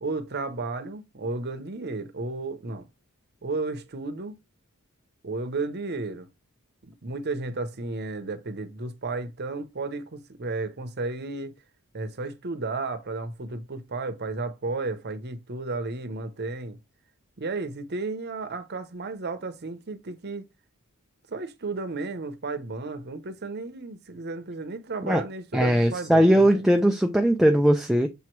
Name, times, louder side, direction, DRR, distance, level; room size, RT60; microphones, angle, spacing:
voice 1, 0.0-2.9 3.4-4.4 5.2-6.3 6.8-11.5 11.9-16.8 17.4-20.4 21.3-26.7, right 3 dB, 50° right, 0.8 m, -33 dB
voice 2, 25.5-28.1, equal, ahead, 0.4 m, -20 dB
6.9 x 3.0 x 4.6 m
head